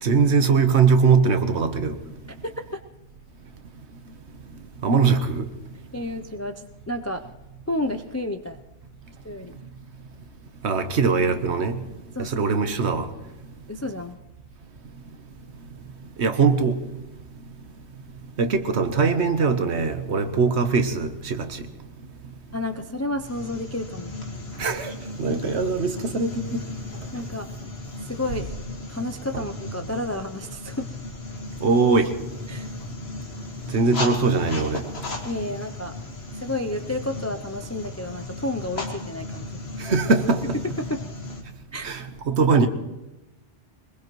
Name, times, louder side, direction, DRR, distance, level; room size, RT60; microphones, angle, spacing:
voice 1, 0.0-2.0 4.8-5.5 10.6-11.8 12.2-13.1 16.2-16.8 18.4-21.6 24.6-26.6 29.3-29.4 31.6-32.1 33.7-34.8 39.8-40.6 41.8-42.7, right 4 dB, 65° right, 1.3 m, -21 dB
voice 2, 2.4-2.8 5.9-7.2 7.7-8.6 9.2-9.5 12.2-12.3 13.7-14.2 22.5-24.1 27.1-27.5 28.0-28.5 28.9-30.9 32.5-32.7 35.2-35.9 36.3-39.5 40.8-41.0 41.7-41.9, left 1 dB, 25° left, 0.3 m, -31 dB
sound 1, 23.2-41.4, left 2 dB, 55° left, 2.0 m, -36 dB
22.5 x 21.0 x 3.1 m
omnidirectional pair, 1.2 m